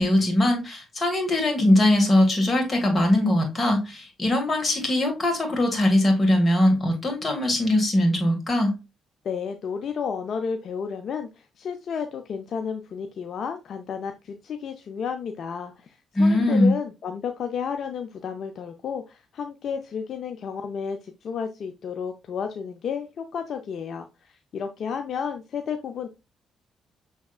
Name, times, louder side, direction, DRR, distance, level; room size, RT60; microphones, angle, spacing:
voice 1, 0.0-8.8 16.2-16.7, left 1 dB, 30° left, 1.8 m, -21 dB
voice 2, 9.2-26.1, left 6 dB, 60° left, 0.5 m, -32 dB
6.3 x 3.5 x 2.4 m
cardioid pair, 90°, 0 cm